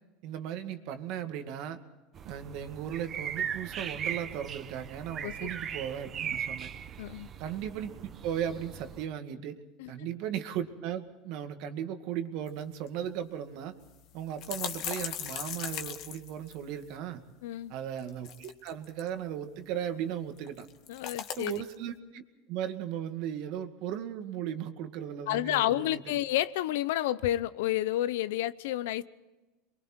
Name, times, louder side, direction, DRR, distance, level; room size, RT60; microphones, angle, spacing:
voice 1, 0.2-1.8 2.2-6.7 7.4-9.6 9.9-13.8 14.1-17.2 17.7-20.7 21.4-22.2 22.5-26.2, right 9 dB, 55° right, 2.1 m, -36 dB
sound 1, 2.1-9.0, right 8 dB, 30° right, 1.2 m, -38 dB
sound 2, 12.5-12.6 12.9-13.0 13.8-16.9 18.0-19.1 20.4-21.7, left 9 dB, 50° left, 2.0 m, -38 dB
voice 2, 17.4-17.7 20.9-21.6 25.3-29.0, left 13 dB, 80° left, 0.8 m, -30 dB
28.0 x 23.0 x 4.5 m
supercardioid pair, 130°, 0 cm